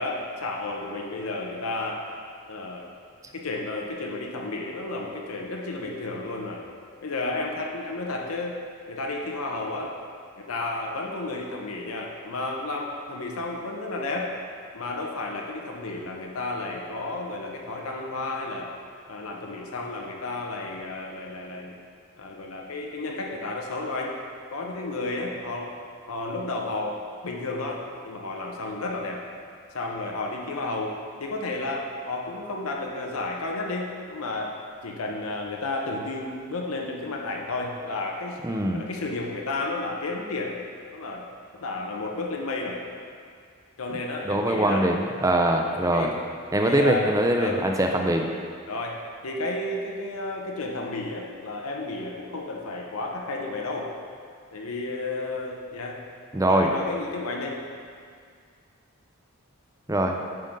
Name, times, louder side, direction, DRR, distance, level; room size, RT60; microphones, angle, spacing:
voice 1, 0.0-2.1 2.5-2.9 3.3-6.7 7.0-8.6 8.9-9.9 10.4-14.3 14.7-18.7 19.1-21.8 22.2-24.2 24.5-25.8 26.1-29.2 29.7-34.5 34.8-38.4 38.7-40.6 40.9-41.2 41.5-42.8 43.8-44.9 45.6-46.1 46.6-47.6 48.7-53.9 54.5-56.0 56.4-57.6, left 2 dB, 85° left, 0 dB, 0.8 m, -32 dB
voice 2, 38.4-38.8 44.2-46.1 46.5-48.3 56.3-56.7 59.9-60.2, right 1 dB, 15° right, 3 dB, 0.4 m, -22 dB
9.2 x 3.7 x 5.3 m, 2.1 s
head